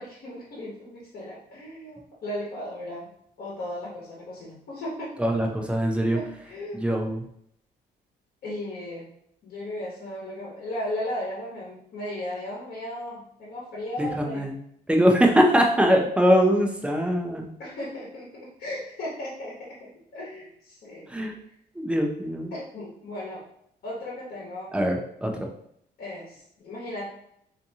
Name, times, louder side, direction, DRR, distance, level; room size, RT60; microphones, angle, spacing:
voice 1, 0.0-3.1 3.4-5.3 6.1-6.9 8.4-9.1 9.4-14.5 17.6-21.1 22.5-23.5 23.8-24.8 26.0-27.1, left 1 dB, 55° left, -5 dB, 1.1 m, -36 dB
voice 2, 5.2-6.2 6.7-7.2 14.0-14.5 14.9-17.5 21.1-21.3 21.8-22.5 24.7-25.3, equal, 5° right, 2 dB, 0.4 m, -22 dB
3.5 x 2.7 x 2.7 m, 0.71 s
cardioid pair, 150°, 17 cm